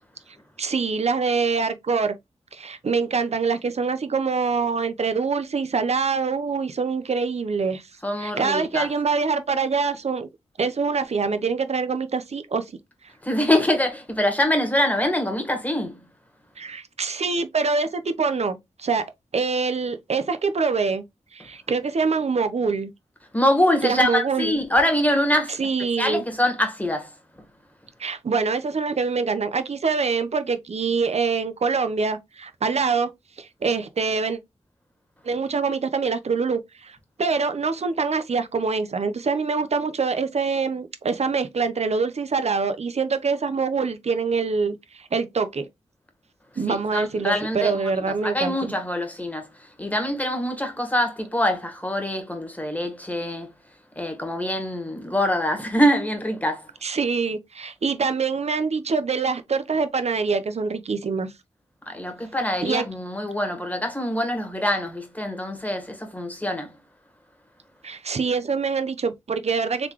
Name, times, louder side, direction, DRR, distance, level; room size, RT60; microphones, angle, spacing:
voice 1, 0.6-2.1 2.5-7.8 8.2-10.3 10.6-12.6 16.6-21.0 21.3-22.9 23.8-24.6 25.6-26.2 28.0-33.1 33.4-34.4 35.2-45.7 46.6-48.7 56.8-61.3 62.6-62.9 67.8-69.9, right 4 dB, 60° right, 0.7 m, -25 dB
voice 2, 8.0-8.9 13.2-16.0 23.3-25.6 26.0-27.1 46.7-49.5 49.8-53.5 54.0-56.7 61.9-66.7, left 1 dB, 15° left, 1.4 m, -24 dB
3.9 x 3.5 x 3.0 m
cardioid pair, 55°, 12 cm